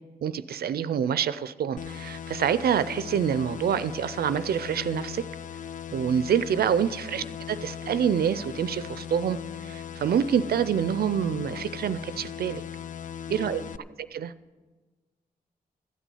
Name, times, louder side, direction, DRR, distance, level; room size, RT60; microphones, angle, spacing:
voice 1, 0.2-5.2 5.9-7.2 7.6-9.4 9.6-12.6 13.3-13.6 14.1-14.3, right 8 dB, 75° right, 15 dB, 0.4 m, -26 dB
sound 1, 1.8-13.8, left 9 dB, 55° left, 0.4 m, -38 dB
voice 2, 13.3-13.9, right 2 dB, 5° left, 2 dB, 2.3 m, -44 dB
13.5 x 6.1 x 8.3 m, 1.3 s
cardioid pair, 60°, 16 cm